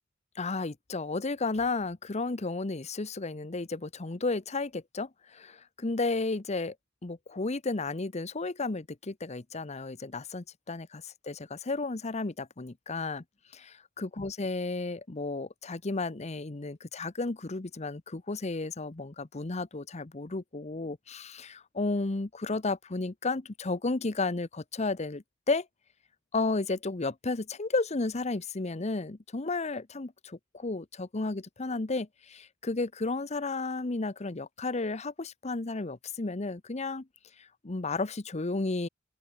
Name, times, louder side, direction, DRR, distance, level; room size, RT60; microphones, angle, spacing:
voice 1, 0.4-6.7 7.0-13.2 13.5-25.7 26.3-37.1 37.4-38.9, left 3 dB, 35° left, 0.8 m, -33 dB
open air
head